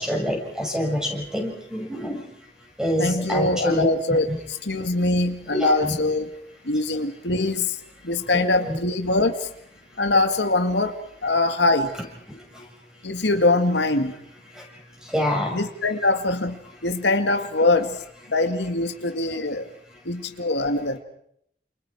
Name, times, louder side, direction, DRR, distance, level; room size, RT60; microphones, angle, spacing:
voice 1, 0.0-2.2 2.8-3.9 4.3-4.4 5.6-6.0 8.3-8.8 15.1-15.6, equal, 5° right, 1 dB, 6.6 m, -26 dB
voice 2, 3.0-6.3 6.6-7.8 8.0-9.5 10.0-11.9 13.0-14.1 15.5-18.0 18.3-19.7 20.0-21.0, left 2 dB, 80° left, 6 dB, 2.1 m, -23 dB
30.0 x 28.5 x 4.9 m, 0.70 s
head